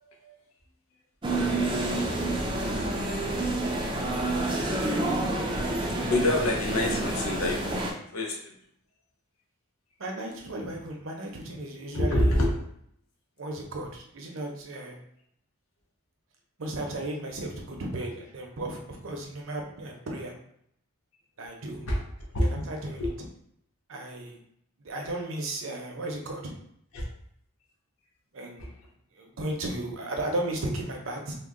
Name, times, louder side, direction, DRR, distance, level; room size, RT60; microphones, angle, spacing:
sound 1, 1.2-7.9, right 2 dB, 20° right, 0.4 m, -28 dB
voice 1, 5.8-8.5 11.9-12.6 21.9-22.0 22.3-22.5 23.0-23.1 26.9-27.1 28.6-28.7, left 1 dB, 75° left, -1 dB, 0.8 m, -27 dB
voice 2, 10.0-12.5 13.4-15.0 16.6-20.3 21.4-21.9 22.4-23.1 23.9-24.4 24.8-26.5 28.3-28.6 29.2-31.4, right 1 dB, 65° right, 1 dB, 0.6 m, -35 dB
2.9 x 2.1 x 3.7 m, 0.70 s
head